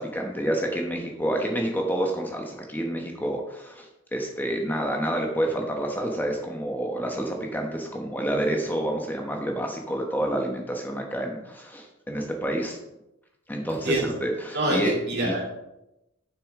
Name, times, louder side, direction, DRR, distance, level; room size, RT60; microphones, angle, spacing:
voice 1, 0.0-12.8 13.5-14.9 15.2-15.3, right 1 dB, 10° left, 1 dB, 1.0 m, -28 dB
voice 2, 13.7-14.1 14.5-15.4, right 1 dB, 60° right, -2 dB, 2.9 m, -25 dB
11.0 x 6.2 x 3.6 m, 0.90 s
head